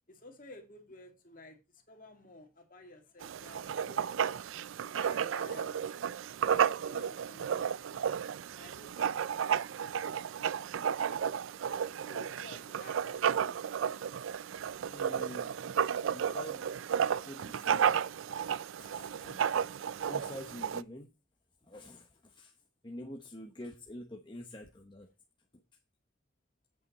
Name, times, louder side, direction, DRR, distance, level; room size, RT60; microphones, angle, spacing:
voice 1, 0.1-4.4 4.9-5.9 6.4-7.7 8.6-10.6 12.0-13.9, left 2 dB, 45° left, 2.1 m, -54 dB
Writing, 3.2-20.8, right 8 dB, 80° right, 0.4 m, -33 dB
voice 2, 14.9-15.7 16.0-16.6 17.2-18.3 18.6-21.1 21.6-22.5 22.8-25.1, left 1 dB, 25° left, 0.9 m, -47 dB
9.1 x 8.0 x 4.2 m
head